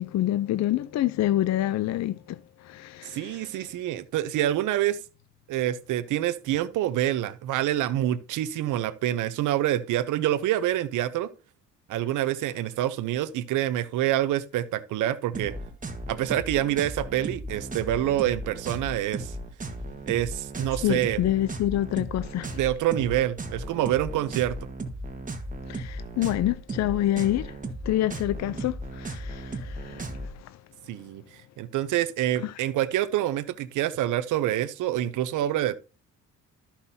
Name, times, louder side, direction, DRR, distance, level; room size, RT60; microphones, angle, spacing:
voice 1, 0.0-2.4 2.6-3.5 20.8-22.6 25.7-27.6 27.8-30.5 32.4-32.5, left 13 dB, 60° left, 0.5 m, -27 dB
voice 2, 3.0-5.0 5.5-11.3 11.9-15.5 16.1-19.4 20.1-21.2 22.5-24.6 30.9-31.2 31.6-35.8, right 13 dB, 85° right, 0.7 m, -26 dB
sound 1, 15.3-30.3, right 2 dB, 25° right, 1.5 m, -36 dB
13.5 x 5.8 x 2.7 m
cardioid pair, 90°, 30 cm